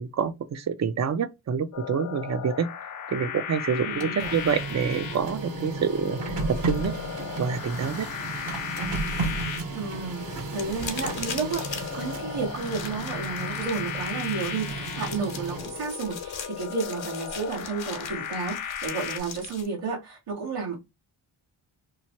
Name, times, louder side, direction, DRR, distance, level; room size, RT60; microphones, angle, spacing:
voice 1, 0.0-2.7 3.1-6.9 7.2-8.1, right 6 dB, 35° right, 0.4 m, -27 dB
sound 1, 1.7-19.2, left 8 dB, 45° left, 0.4 m, -36 dB
voice 2, 3.7-4.4 9.7-20.8, right 4 dB, 90° right, 1.3 m, -32 dB
Printer, 3.8-15.9, right 3 dB, 60° right, 1.0 m, -34 dB
sound 2, 10.5-19.7, left 5 dB, 60° left, 0.9 m, -40 dB
3.1 x 2.1 x 2.8 m
cardioid pair, 65°, 50 cm